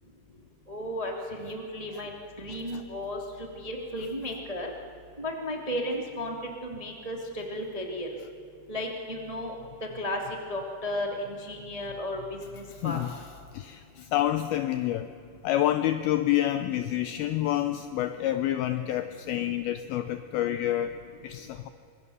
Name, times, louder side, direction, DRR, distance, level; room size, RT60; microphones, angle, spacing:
voice 1, 0.7-2.1 2.4-3.2 3.6-4.7 5.2-6.3 6.6-8.1 8.7-9.5 9.9-10.2 10.5-13.0, left 1 dB, 20° right, 1 dB, 0.8 m, -34 dB
voice 2, 12.7-13.2 13.5-15.1 15.4-20.9 21.2-21.7, left 13 dB, 85° left, 10 dB, 2.1 m, -28 dB
26.0 x 22.0 x 7.0 m, 2.6 s
omnidirectional pair, 5.2 m